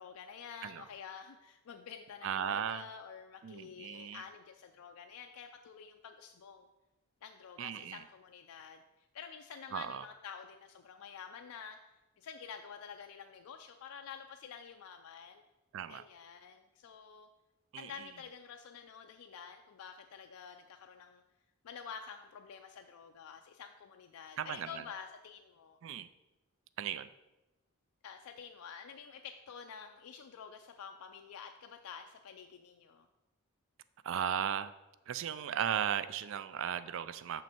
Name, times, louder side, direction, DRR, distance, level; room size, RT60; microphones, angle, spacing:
voice 1, 0.0-6.7 7.2-15.4 15.9-17.3 17.8-21.2 21.6-25.8 28.0-33.1, left 7 dB, 75° left, 4 dB, 0.4 m, -49 dB
voice 2, 2.2-2.8 3.4-4.2 7.6-8.0 9.7-10.0 15.7-16.0 17.7-17.9 24.4-24.7 25.8-26.1 26.8-27.1 34.0-34.7 35.1-37.4, right 9 dB, 60° right, 14 dB, 0.3 m, -36 dB
6.3 x 6.1 x 4.4 m, 1.0 s
head